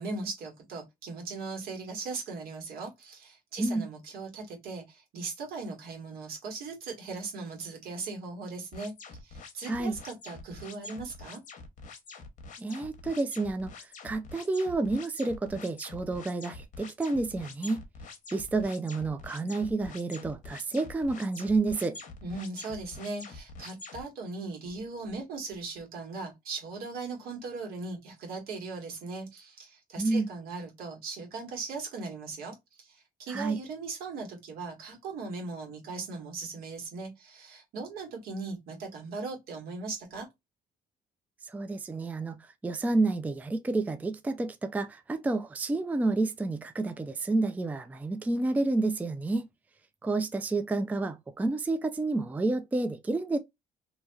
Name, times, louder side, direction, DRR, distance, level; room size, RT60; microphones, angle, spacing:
voice 1, 0.0-8.9 9.2-11.4 22.2-40.3, right 3 dB, 75° right, 1.6 m, -39 dB
sound 1, 8.7-24.0, left 3 dB, 55° left, 0.9 m, -46 dB
voice 2, 12.6-17.8 18.3-22.0 30.0-30.3 33.3-33.6 41.4-42.4 42.6-49.5 50.0-53.4, right 2 dB, 10° right, 0.3 m, -30 dB
2.8 x 2.8 x 2.3 m
cardioid pair, 100°, 16 cm